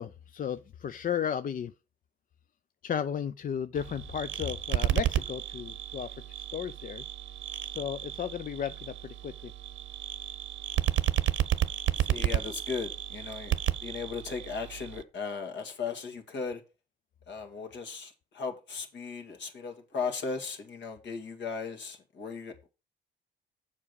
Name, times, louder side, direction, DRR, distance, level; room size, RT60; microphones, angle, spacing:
voice 1, 0.0-1.7 2.8-7.0 7.7-9.5, left 8 dB, 45° left, 0.5 m, -34 dB
sound 1, 3.7-15.0, right 12 dB, 75° right, 0.9 m, -32 dB
voice 2, 12.0-13.5 13.8-16.6 17.3-22.7, left 5 dB, 65° left, 2.1 m, -37 dB
7.4 x 4.9 x 6.9 m
cardioid pair, 90°, 20 cm